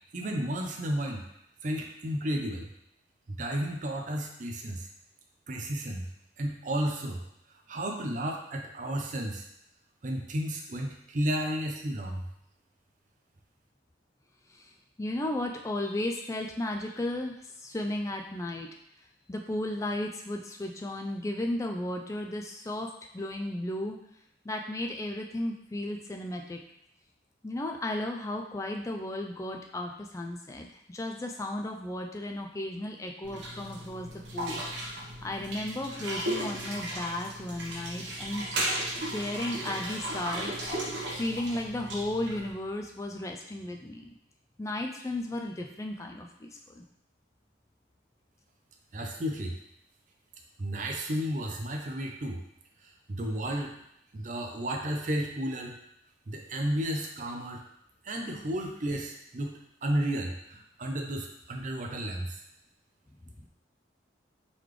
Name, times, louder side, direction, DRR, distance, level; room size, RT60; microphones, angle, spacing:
voice 1, 0.1-1.2 1.6-2.7 3.3-4.9 5.5-6.1 6.4-7.2 7.7-9.5 10.0-12.3 48.9-49.6 50.6-52.4 52.8-53.7 54.1-55.8 56.3-57.6 58.0-62.4, right 1 dB, 40° right, 1 dB, 0.5 m, -32 dB
voice 2, 15.0-18.7 19.3-24.0 24.4-26.6 27.4-34.6 35.2-38.5 39.1-40.5 41.1-44.1 44.6-46.8, left 1 dB, 15° left, 2 dB, 0.3 m, -34 dB
sound 1, 33.2-42.5, right 1 dB, 75° right, 1.1 m, -35 dB
3.9 x 3.2 x 3.2 m, 0.76 s
head